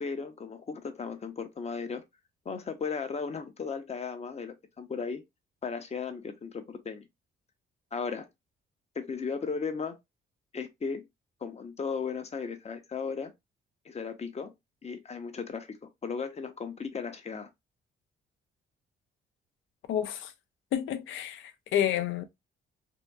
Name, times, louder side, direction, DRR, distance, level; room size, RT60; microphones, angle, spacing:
voice 1, 0.0-2.0 2.5-5.2 5.6-7.1 7.9-8.3 9.0-10.0 10.5-11.0 11.4-13.3 13.8-14.5 14.8-15.8 16.0-17.5, left 5 dB, 35° left, 0.7 m, -36 dB
voice 2, 19.9-20.3 20.7-22.2, left 10 dB, 80° left, 0.5 m, -30 dB
2.7 x 2.5 x 2.2 m
cardioid pair, 90°, 20 cm